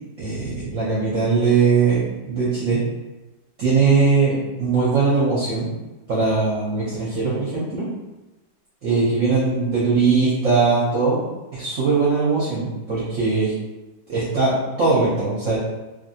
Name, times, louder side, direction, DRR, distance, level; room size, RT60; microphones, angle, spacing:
voice 1, 0.2-2.0 2.3-2.8 3.6-5.7 6.1-7.9 8.8-11.2 11.5-13.5 14.1-15.6, right 4 dB, 60° right, -8 dB, 0.9 m, -20 dB
2.9 x 2.6 x 2.7 m, 1.1 s
omnidirectional pair, 1.9 m